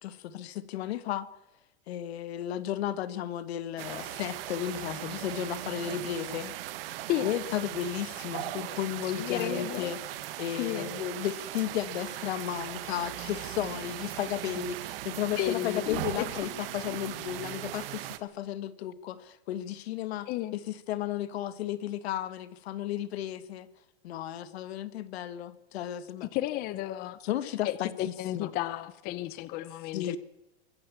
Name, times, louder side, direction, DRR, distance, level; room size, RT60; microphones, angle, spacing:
voice 1, 0.0-1.3 1.9-6.5 7.2-10.0 10.4-23.7 24.0-26.3 27.2-28.5 29.9-30.2, left 11 dB, 70° left, 15 dB, 1.8 m, -34 dB
sound 1, 3.8-18.2, right 14 dB, 60° right, 1.9 m, -38 dB
voice 2, 9.2-10.0 10.6-10.9 15.3-16.4 20.3-20.5 26.3-27.2 27.6-30.2, left 14 dB, 30° left, 16 dB, 0.8 m, -33 dB
23.5 x 16.0 x 7.4 m, 0.94 s
supercardioid pair, 165°, 33 cm